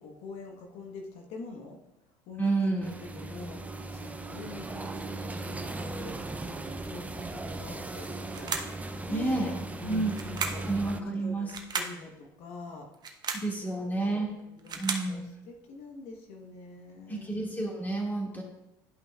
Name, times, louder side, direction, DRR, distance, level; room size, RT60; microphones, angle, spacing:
voice 1, 0.0-1.8 2.3-8.5 9.1-9.4 9.8-10.7 11.0-12.9 13.8-17.3, left 3 dB, 65° left, 2 dB, 1.2 m, -45 dB
voice 2, 2.4-2.9 9.1-9.5 9.9-10.1 10.7-11.5 13.4-14.4 14.8-15.2 17.1-18.4, right 2 dB, 15° left, -1 dB, 2.1 m, -30 dB
sound 1, 2.8-11.0, right 2 dB, 10° right, 0.6 m, -38 dB
sound 2, 8.3-8.8 10.1-10.7 11.5-12.0 12.9-13.5 14.4-15.1, right 5 dB, 35° right, 1.0 m, -34 dB
11.5 x 5.4 x 2.4 m, 0.92 s
hypercardioid pair, 80°, 12 cm